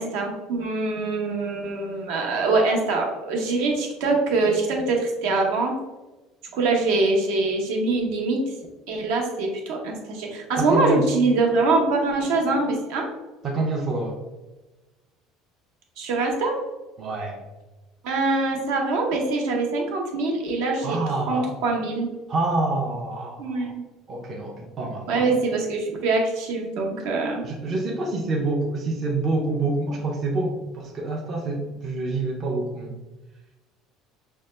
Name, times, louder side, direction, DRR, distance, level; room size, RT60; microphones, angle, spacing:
voice 1, 0.0-5.7 6.5-8.4 8.9-13.1 16.0-16.6 18.0-21.0 21.3-22.1 23.4-23.8 25.1-27.4, right 3 dB, 70° right, 1 dB, 0.9 m, -23 dB
voice 2, 10.6-11.1 13.4-14.2 17.0-17.5 20.8-21.6 22.3-23.8 24.1-25.4 27.4-33.0, right 2 dB, 30° right, -1 dB, 0.5 m, -27 dB
5.4 x 2.1 x 3.1 m, 1.1 s
cardioid pair, 175°, 0 cm